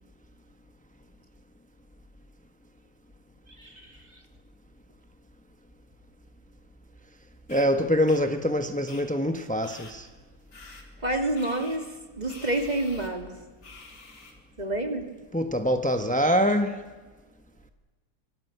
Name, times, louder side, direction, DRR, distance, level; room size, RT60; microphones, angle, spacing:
voice 1, 3.5-4.2 11.0-13.3 14.6-15.1, right 1 dB, 20° right, 2.6 m, -29 dB
sound 1, 7.5-7.7 8.1-8.2 8.9-9.0 9.6-9.9 10.5-10.8 11.4-11.8 12.3-13.1 13.6-14.3, left 3 dB, 85° left, 4.7 m, -47 dB
voice 2, 7.5-10.1 15.3-16.8, equal, 10° left, 0.4 m, -24 dB
25.0 x 21.0 x 8.1 m
omnidirectional pair, 2.3 m